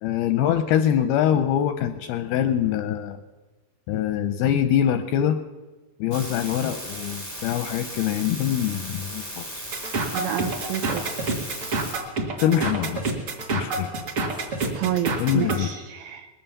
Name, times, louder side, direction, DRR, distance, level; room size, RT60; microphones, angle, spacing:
voice 1, 0.0-3.2 3.9-5.4 6.0-9.5 12.4-13.0 13.5-13.9 15.2-15.7, left 10 dB, 80° left, 8 dB, 2.3 m, -24 dB
sound 1, 6.1-11.9, equal, 15° right, 0.5 m, -36 dB
sound 2, 9.7-15.6, right 3 dB, 45° right, 1.9 m, -28 dB
voice 2, 10.1-11.1 14.7-16.3, right 10 dB, 85° right, 7 dB, 2.2 m, -29 dB
20.5 x 9.0 x 7.1 m, 1.2 s
omnidirectional pair, 5.0 m